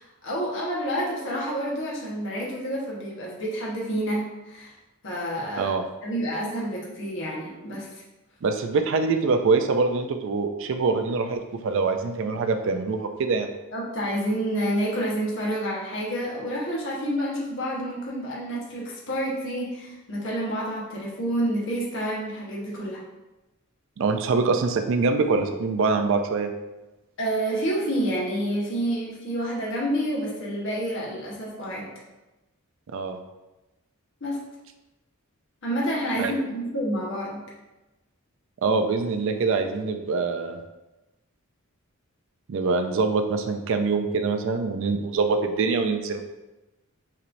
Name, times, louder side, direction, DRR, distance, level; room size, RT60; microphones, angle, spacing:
voice 1, 0.0-4.7 5.0-5.7 6.0-8.0 13.7-23.0 27.2-31.9 34.2-34.4 35.6-37.4, equal, 60° left, -5 dB, 1.2 m, -29 dB
voice 2, 8.4-13.5 24.0-26.5 32.9-33.2 36.2-36.3 38.6-40.6 42.5-46.2, right 4 dB, 60° right, 6 dB, 0.4 m, -24 dB
5.7 x 3.1 x 2.6 m, 1.0 s
head